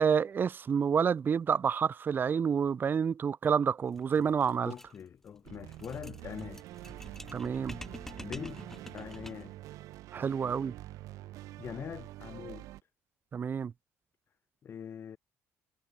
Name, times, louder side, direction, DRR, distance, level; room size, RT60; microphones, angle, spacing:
voice 1, 0.0-4.7 7.3-7.8 10.1-10.7 13.3-13.7, right 7 dB, 35° right, 2.0 m, -28 dB
sound 1, 3.9-9.6, left 1 dB, 5° left, 5.0 m, -48 dB
voice 2, 4.6-6.7 8.2-8.6 8.9-9.8 11.6-12.7 14.6-15.2, left 8 dB, 45° left, 4.6 m, -43 dB
sound 2, 5.4-12.8, right 16 dB, 80° right, 7.5 m, -46 dB
cardioid pair, 115°, 6 cm